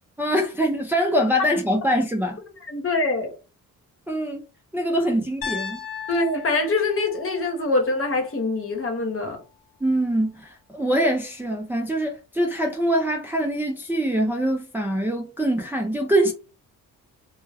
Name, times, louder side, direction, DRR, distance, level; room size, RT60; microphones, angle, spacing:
voice 1, 0.2-2.4 4.1-4.4 4.7-5.8 9.8-16.3, equal, 5° right, 0.5 m, -23 dB
voice 2, 2.7-3.3 6.1-9.4, left 2 dB, 40° left, 1.0 m, -24 dB
Piano, 5.4-9.5, left 7 dB, 70° left, 0.7 m, -38 dB
2.2 x 2.1 x 3.4 m
cardioid pair, 80°, 35 cm